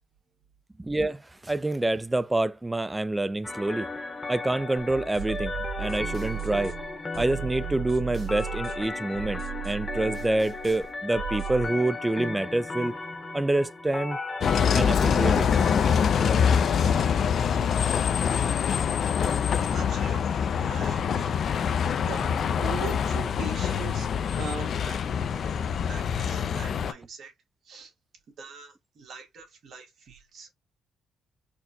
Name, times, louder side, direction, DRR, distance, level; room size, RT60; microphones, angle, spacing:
voice 1, 0.8-3.9 4.3-6.7 7.2-13.0 13.3-14.2 14.7-15.5 15.9-16.0, right 2 dB, 15° right, 0.3 m, -27 dB
sound 1, 3.4-16.4, left 3 dB, 30° left, 0.9 m, -36 dB
sound 2, 4.8-11.7, right 11 dB, 45° right, 1.1 m, -36 dB
Bus, 14.4-26.9, left 7 dB, 60° left, 0.4 m, -25 dB
voice 2, 19.5-21.7 22.1-24.1 24.3-25.0 25.3-27.3 27.6-27.9 28.4-30.5, right 5 dB, 65° right, 1.4 m, -41 dB
4.3 x 2.1 x 2.7 m
cardioid pair, 90°, 0 cm